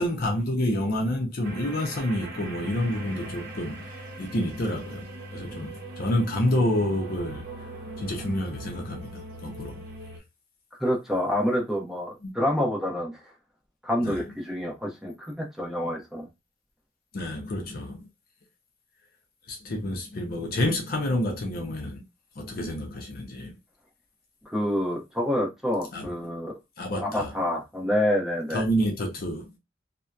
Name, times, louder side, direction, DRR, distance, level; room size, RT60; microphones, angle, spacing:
voice 1, 0.0-3.9 4.2-7.4 8.0-9.8 12.2-12.3 14.0-14.2 17.1-18.1 19.5-22.0 22.4-23.6 25.9-26.1 26.8-27.3 28.5-29.6, left 1 dB, 55° left, 0.5 m, -28 dB
sound 1, 1.4-10.2, right 1 dB, 55° right, 0.7 m, -40 dB
voice 2, 10.8-13.2 13.8-16.3 24.5-26.5 27.0-28.6, left 1 dB, ahead, 0.7 m, -27 dB
2.7 x 2.1 x 2.3 m
head